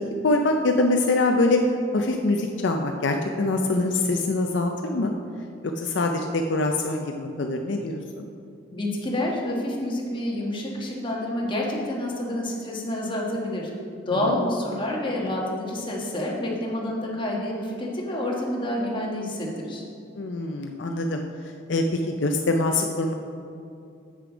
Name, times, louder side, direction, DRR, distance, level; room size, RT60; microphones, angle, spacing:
voice 1, 0.2-1.6 1.9-5.1 5.8-8.3 14.2-14.4 20.2-21.2 21.7-23.1, left 2 dB, 65° left, 3 dB, 0.5 m, -24 dB
voice 2, 8.7-13.7 14.1-19.8, left 1 dB, 25° left, -2 dB, 1.3 m, -28 dB
7.7 x 6.7 x 5.0 m, 2.5 s
head